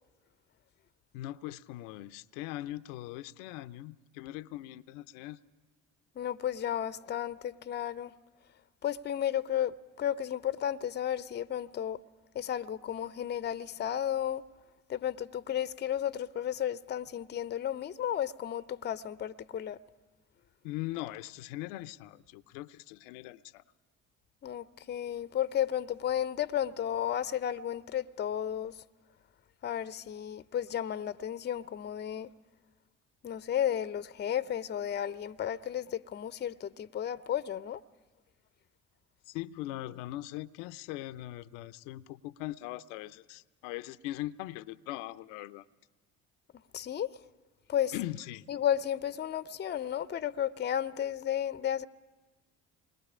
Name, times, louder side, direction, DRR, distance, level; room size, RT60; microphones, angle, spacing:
voice 1, 1.1-5.4 20.6-23.6 39.3-45.7 47.9-48.5, left 16 dB, 75° left, 0.6 m, -40 dB
voice 2, 6.2-8.1 8.8-12.0 12.3-14.4 14.9-19.8 24.4-28.7 29.6-32.3 33.2-37.8 46.7-47.2 47.7-47.9 48.5-51.9, left 10 dB, 30° left, 0.6 m, -33 dB
27.5 x 21.5 x 4.9 m
hypercardioid pair, 55°, 37 cm